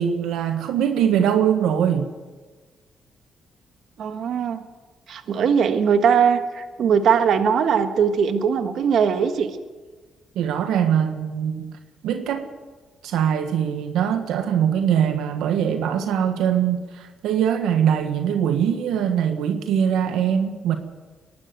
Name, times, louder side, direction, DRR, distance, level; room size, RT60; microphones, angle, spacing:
voice 1, 0.0-2.1 10.3-11.7 12.0-12.5 13.0-20.8, right 8 dB, 90° right, 6 dB, 1.5 m, -22 dB
voice 2, 4.0-4.6 5.1-9.5, right 7 dB, 75° right, 8 dB, 1.5 m, -20 dB
23.0 x 12.0 x 9.3 m, 1.3 s
cardioid pair, 70°, 0 cm